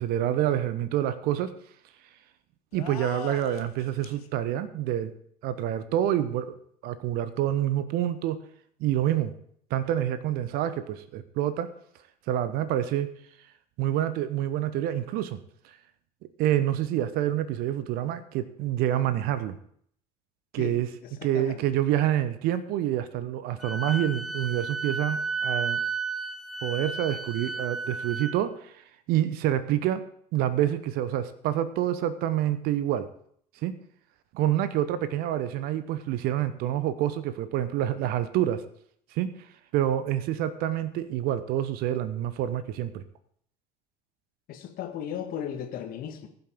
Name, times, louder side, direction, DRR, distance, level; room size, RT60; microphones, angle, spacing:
voice 1, 0.0-1.6 2.7-5.1 5.4-6.5 6.8-8.4 8.8-9.3 9.7-11.7 12.3-13.1 13.8-15.4 16.4-19.6 20.5-20.9 21.2-25.8 26.6-28.7 29.1-30.0 30.3-33.1 33.6-33.8 34.3-38.6 39.1-39.3 39.7-43.0, right 12 dB, 50° right, 14 dB, 0.9 m, -27 dB
sound 1, 2.7-4.3, left 10 dB, 70° left, 1.0 m, -41 dB
voice 2, 21.0-21.5 44.5-46.3, left 9 dB, 45° left, 5 dB, 1.8 m, -36 dB
Wind instrument woodwind instrument, 23.6-28.4, right 4 dB, ahead, 1.0 m, -32 dB
19.0 x 7.9 x 3.7 m, 0.64 s
figure-of-eight pair, 65°, 20 cm